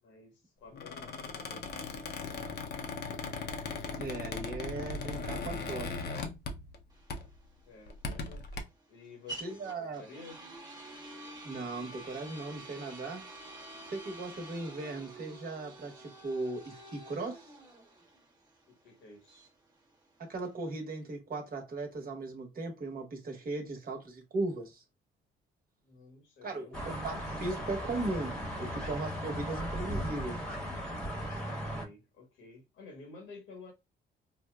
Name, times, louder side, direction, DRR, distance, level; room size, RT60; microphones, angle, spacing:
voice 1, 0.0-3.2 7.6-8.5 8.9-10.4 18.7-19.5 25.8-26.7 31.4-33.7, left 3 dB, 85° left, 1.2 m, -52 dB
Squeak, 0.7-6.8 7.1-7.4 7.9-8.6, left 4 dB, 55° left, 0.6 m, -38 dB
voice 2, 4.0-6.0 9.4-10.0 11.4-13.2 13.9-17.5 20.2-24.8 26.4-30.4, right 2 dB, 45° right, 1.1 m, -38 dB
sound 1, 6.9-20.7, right 2 dB, 20° right, 0.9 m, -49 dB
sound 2, 26.7-31.9, equal, 5° left, 1.0 m, -37 dB
4.2 x 2.1 x 2.2 m
cardioid pair, 90°, 20 cm